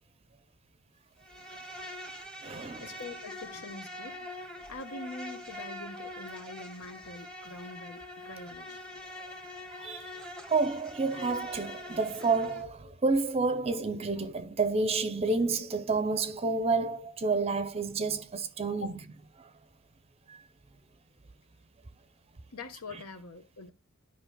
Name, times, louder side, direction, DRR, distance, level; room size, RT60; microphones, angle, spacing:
Insect, 1.2-12.6, left 1 dB, 5° left, 0.8 m, -44 dB
voice 1, 2.1-2.9 9.7-10.1 10.5-18.9 19.4-19.5 20.3-20.4, right 3 dB, 25° right, 0.5 m, -30 dB
voice 2, 2.8-8.8 18.8-19.0 22.5-23.7, left 3 dB, 85° left, 1.0 m, -44 dB
11.5 x 5.2 x 2.2 m
head